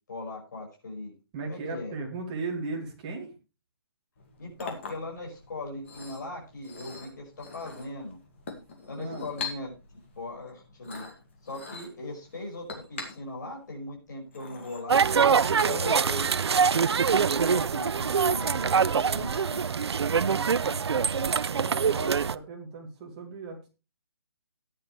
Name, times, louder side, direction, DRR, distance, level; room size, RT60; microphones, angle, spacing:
voice 1, 0.1-1.1 1.4-1.9 4.4-8.2 8.9-9.7 10.2-11.0 11.4-15.1 15.6-16.4 16.7-19.6, left 2 dB, 45° left, -1 dB, 5.6 m, -39 dB
voice 2, 1.3-3.3 9.0-9.3 18.1-19.6 20.2-23.7, right 3 dB, 15° right, 0 dB, 2.2 m, -38 dB
Chink clink, 4.2-16.2, left 4 dB, 25° left, 2.2 m, -43 dB
sound 1, 14.9-22.3, right 6 dB, 85° right, 0.6 m, -24 dB
14.5 x 10.0 x 3.3 m, 0.29 s
hypercardioid pair, 180°, 14 cm